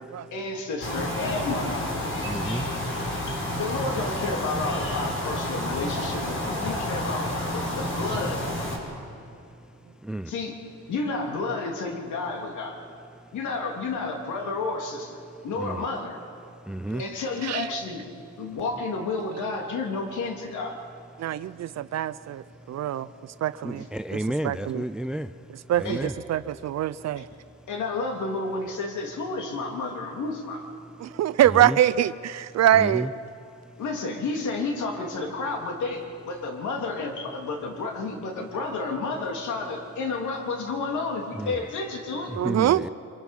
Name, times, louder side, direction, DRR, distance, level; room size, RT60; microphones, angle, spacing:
voice 1, 0.3-1.7 3.3-8.4 10.3-10.6 10.9-12.8 13.3-16.2 17.0-20.8 23.8-23.9 25.8-26.1 27.2-27.3 27.7-30.6 33.8-42.3, left 3 dB, 75° left, 2 dB, 3.4 m, -31 dB
sound 1, 0.8-8.8, left 1 dB, 45° left, 5.6 m, -30 dB
voice 2, 2.2-2.7 10.0-10.3 15.6-15.8 16.7-17.0 23.6-25.3 25.8-26.1 31.5-31.8 32.7-33.1 41.4-41.5 42.4-42.9, right 1 dB, 5° right, 13 dB, 0.5 m, -31 dB
voice 3, 21.2-23.1 23.4-23.8 24.1-24.2 24.4-24.8 25.7-26.0 26.3-27.2 31.0-33.1 42.4-42.8, right 11 dB, 60° right, 14 dB, 0.6 m, -24 dB
25.0 x 23.5 x 5.5 m, 2.6 s
cardioid pair, 90°, 30 cm